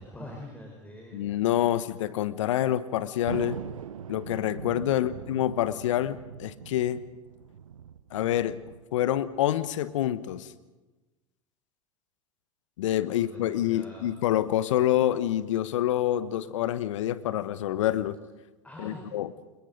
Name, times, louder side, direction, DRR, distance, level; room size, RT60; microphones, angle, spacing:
voice 1, 0.0-1.3 4.9-5.3 13.1-14.2 18.6-19.1, left 1 dB, 10° left, 0 dB, 4.5 m, -45 dB
voice 2, 1.1-3.6 4.1-7.0 8.1-8.6 8.9-10.5 12.8-18.2 18.8-19.3, left 12 dB, 70° left, 15 dB, 1.1 m, -27 dB
Thunder, 3.3-10.1, right 8 dB, 85° right, 0.7 m, -42 dB
27.0 x 22.0 x 5.2 m, 1.2 s
hypercardioid pair, 85°, 17 cm